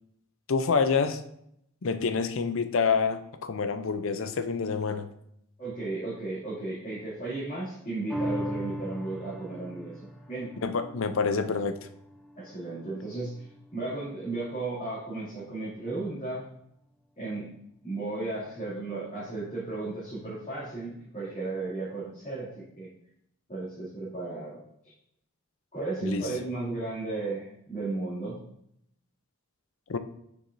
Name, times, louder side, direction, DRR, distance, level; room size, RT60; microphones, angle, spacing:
voice 1, 0.5-1.2 1.8-5.1 10.6-11.8 26.0-26.3 29.9-30.0, left 5 dB, 60° left, 10 dB, 0.5 m, -27 dB
voice 2, 5.6-9.9 10.3-10.5 12.4-16.4 17.2-17.5 17.8-22.9 23.5-24.9 25.7-28.4, right 2 dB, 35° left, -12 dB, 2.5 m, -34 dB
sound 1, 8.1-14.8 15.2-15.3, equal, ahead, 0.4 m, -39 dB
6.8 x 6.2 x 2.6 m, 0.75 s
head